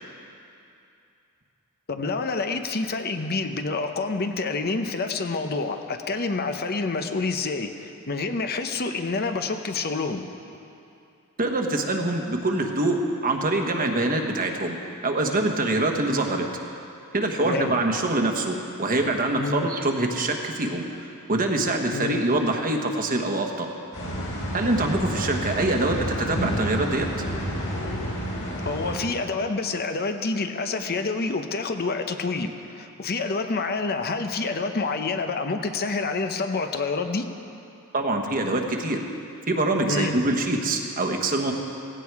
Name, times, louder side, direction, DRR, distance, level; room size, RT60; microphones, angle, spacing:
voice 1, 1.9-10.3 17.4-17.7 19.4-19.7 21.9-22.2 28.6-37.3 39.9-40.2, left 3 dB, 45° left, 6 dB, 0.8 m, -28 dB
voice 2, 11.4-14.8 15.0-16.5 17.1-20.8 21.3-23.7 24.5-27.1 37.9-39.1 39.5-41.5, right 2 dB, 40° right, 3 dB, 1.3 m, -24 dB
sound 1, 23.9-29.0, equal, 60° left, 3.9 m, -30 dB
17.0 x 16.0 x 4.8 m, 2.7 s
head